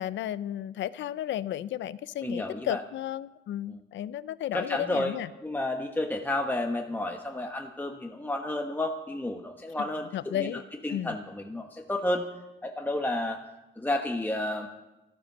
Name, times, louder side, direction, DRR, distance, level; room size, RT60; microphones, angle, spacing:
voice 1, 0.0-5.3 10.1-10.6 10.9-11.2, left 11 dB, 70° left, 17 dB, 0.6 m, -33 dB
voice 2, 2.2-2.8 3.7-3.8 4.5-12.3 12.6-13.4 13.8-14.7, left 1 dB, 10° left, 3 dB, 1.2 m, -31 dB
12.5 x 12.0 x 6.7 m, 1.1 s
cardioid pair, 90°, 20 cm